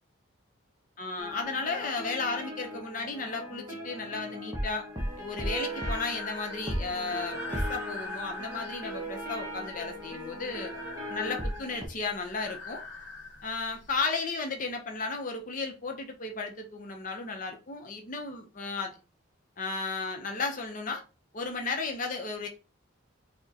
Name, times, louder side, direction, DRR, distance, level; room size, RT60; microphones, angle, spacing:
voice 1, 1.0-4.9 5.2-10.7 11.1-12.8 13.4-19.0 19.6-21.0 21.3-22.5, left 4 dB, 40° left, 0.6 m, -34 dB
sound 1, 1.2-11.9, equal, 15° right, 0.7 m, -37 dB
Breathing, 5.0-14.0, left 3 dB, 65° left, 0.9 m, -44 dB
4.5 x 2.1 x 2.8 m
head